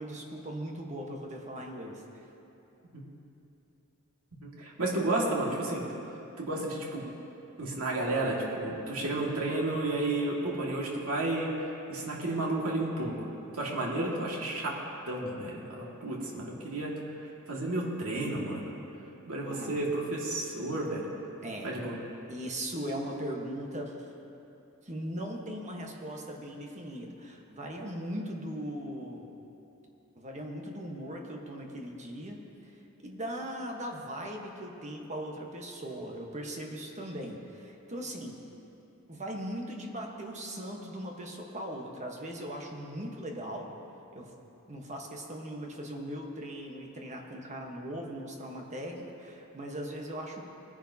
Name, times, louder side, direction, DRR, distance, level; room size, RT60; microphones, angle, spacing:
voice 1, 0.0-2.2 19.5-19.8 21.4-21.7 22.3-23.9 24.8-29.3 30.2-32.4 33.0-38.4 39.1-43.7 44.1-44.3 44.7-50.4, equal, 35° right, 0 dB, 1.3 m, -39 dB
voice 2, 4.4-5.8 6.4-7.0 7.6-11.5 11.9-13.3 13.5-14.8 15.1-16.9 17.5-18.7 19.3-21.1 21.6-22.0, right 2 dB, 80° right, -3 dB, 2.1 m, -32 dB
20.5 x 10.5 x 2.9 m, 2.9 s
head